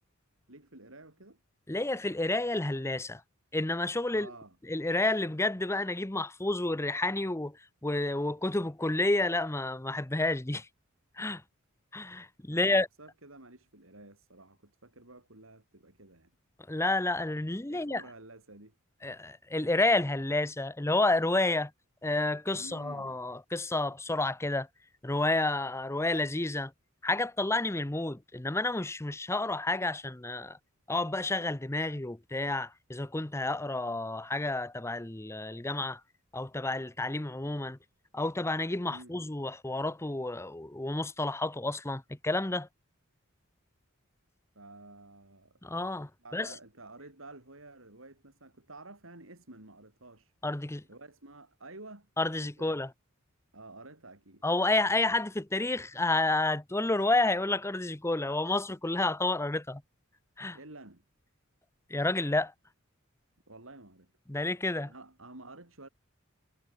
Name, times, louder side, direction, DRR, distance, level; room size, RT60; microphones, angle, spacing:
voice 1, 0.5-1.4 4.1-4.6 12.5-16.3 17.7-18.8 22.5-23.2 38.9-39.2 44.6-45.6 46.2-50.3 50.9-52.7 53.5-54.5 60.5-61.0 63.5-64.1 64.9-65.9, right 2 dB, 70° right, 5.5 m, -51 dB
voice 2, 1.7-3.2 3.5-4.3 4.7-7.6 7.8-10.7 11.2-11.4 11.9-12.9 16.7-18.0 19.0-21.7 22.0-24.7 25.0-26.7 27.0-30.6 30.9-36.0 36.3-37.8 38.1-42.7 45.6-46.5 50.4-50.8 52.2-52.9 54.4-59.8 60.4-60.6 61.9-62.5 64.3-64.9, left 2 dB, 15° left, 0.8 m, -30 dB
head